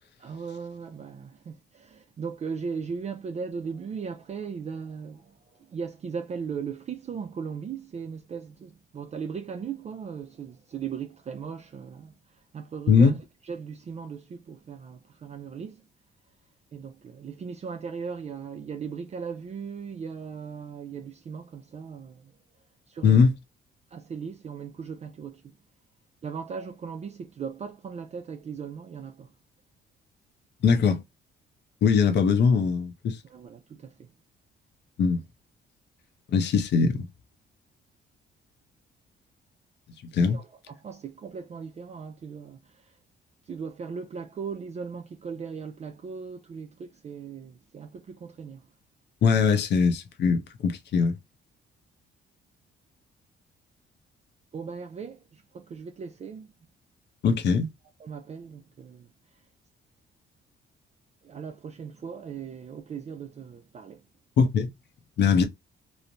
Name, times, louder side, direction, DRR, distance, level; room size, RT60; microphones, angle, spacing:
voice 1, 0.2-13.2 13.4-15.8 16.7-22.3 22.9-23.3 23.9-25.6 26.2-29.3 33.2-34.1 40.3-43.0 43.4-48.7 54.5-56.5 58.0-59.1 61.2-64.0, right 6 dB, 35° right, 0.4 m, -38 dB
voice 2, 30.6-31.0 31.8-33.2 35.0-35.2 36.3-37.1 40.0-40.4 49.2-51.2 57.2-57.7 64.4-64.7 65.2-65.4, left 5 dB, 60° left, 0.6 m, -21 dB
3.0 x 2.1 x 2.5 m
cardioid pair, 90°, 20 cm